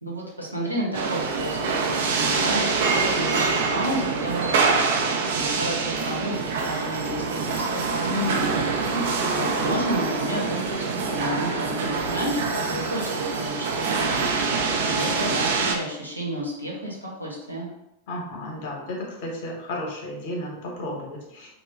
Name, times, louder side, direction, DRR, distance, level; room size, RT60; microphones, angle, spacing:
voice 1, 0.0-4.9 5.4-8.4 9.3-17.7, equal, 85° right, -4 dB, 0.8 m, -31 dB
sound 1, 0.9-15.7, right 4 dB, 55° right, 0.4 m, -25 dB
voice 2, 8.9-9.5 18.1-21.5, left 1 dB, 50° left, -1 dB, 0.8 m, -33 dB
2.9 x 2.1 x 3.4 m, 0.89 s
figure-of-eight pair, 90°, 0 cm